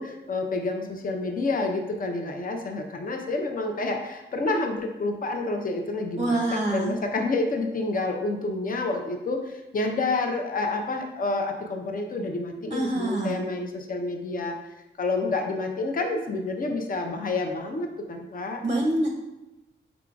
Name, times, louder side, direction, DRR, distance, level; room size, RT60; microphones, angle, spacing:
voice 1, 0.0-14.6 15.0-18.6, left 3 dB, 45° left, 4 dB, 0.6 m, -29 dB
voice 2, 6.2-6.9 12.7-13.4 18.6-19.1, right 2 dB, 35° right, 1 dB, 0.6 m, -25 dB
4.8 x 3.7 x 2.3 m, 1.0 s
cardioid pair, 60°, 21 cm